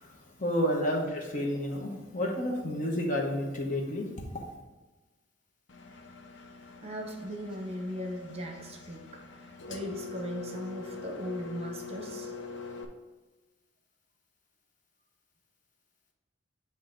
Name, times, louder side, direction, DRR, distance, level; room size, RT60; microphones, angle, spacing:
voice 1, 0.4-4.3, equal, 40° left, 0 dB, 1.0 m, -30 dB
Engine, 5.7-12.8, left 4 dB, 65° left, 0.7 m, -43 dB
voice 2, 6.8-12.3, equal, 30° right, 2 dB, 0.8 m, -38 dB
8.1 x 2.8 x 5.0 m, 1.2 s
head